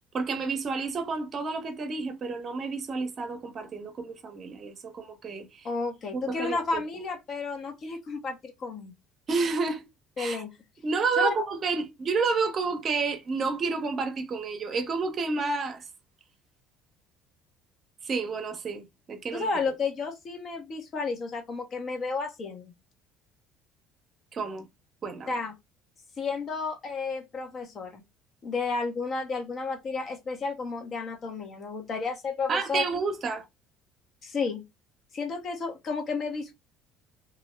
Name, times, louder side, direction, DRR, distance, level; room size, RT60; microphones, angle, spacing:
voice 1, 0.1-5.7 6.1-6.8 9.3-9.9 10.2-10.4 10.8-15.8 18.0-19.5 24.3-24.6 25.0-25.3 32.5-33.4, right 4 dB, 45° right, 0.6 m, -30 dB
voice 2, 5.6-8.9 10.2-10.5 11.2-11.3 19.3-22.7 25.3-25.5 26.2-28.0 28.4-32.8 34.2-34.6 35.1-36.5, left 4 dB, 45° left, 0.8 m, -32 dB
2.4 x 2.0 x 3.0 m
supercardioid pair, 90°, 0 cm